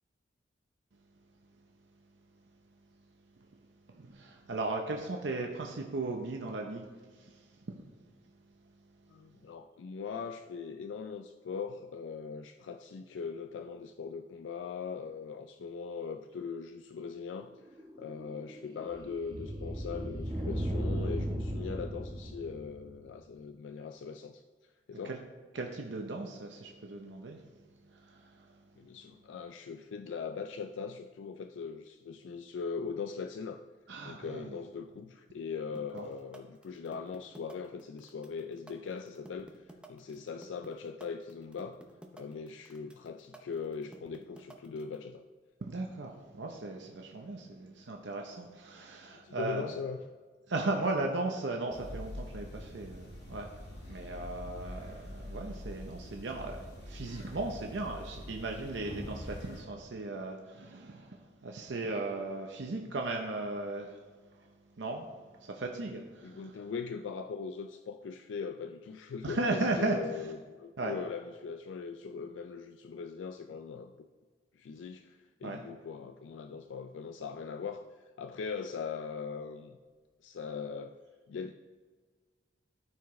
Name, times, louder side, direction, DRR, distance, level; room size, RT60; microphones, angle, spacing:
voice 1, 3.9-7.8 25.0-25.2 25.5-28.6 33.9-34.5 35.9-36.1 45.6-49.7 50.5-64.0 64.3-64.5 64.8-65.1 65.4-66.5 69.2-70.0 70.8-70.9 75.4-75.6, right 2 dB, 70° right, 2 dB, 0.7 m, -37 dB
voice 2, 9.1-24.4 24.9-25.2 28.8-33.6 34.0-41.8 42.1-45.3 49.1-50.0 54.1-54.3 65.9-74.1 74.5-79.8 80.2-81.0 81.3-81.5, left 5 dB, 85° left, 7 dB, 0.4 m, -40 dB
sound 1, 17.5-23.1, equal, 25° right, 1.0 m, -36 dB
sound 2, 35.7-45.0, right 1 dB, 5° right, 0.7 m, -51 dB
sound 3, 51.7-59.6, left 1 dB, 65° left, 2.0 m, -45 dB
13.0 x 4.7 x 3.1 m, 1.5 s
head